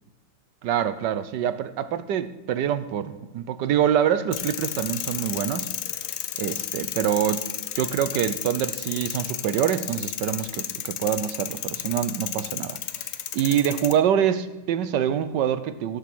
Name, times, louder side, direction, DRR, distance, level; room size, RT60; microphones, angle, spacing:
voice 1, 0.6-5.7 6.4-7.4 7.7-12.8 13.3-16.0, right 9 dB, 70° right, 1.2 m, -25 dB
sound 1, 4.3-13.9, left 11 dB, 65° left, 1.1 m, -32 dB
17.5 x 6.9 x 6.1 m
omnidirectional pair, 2.2 m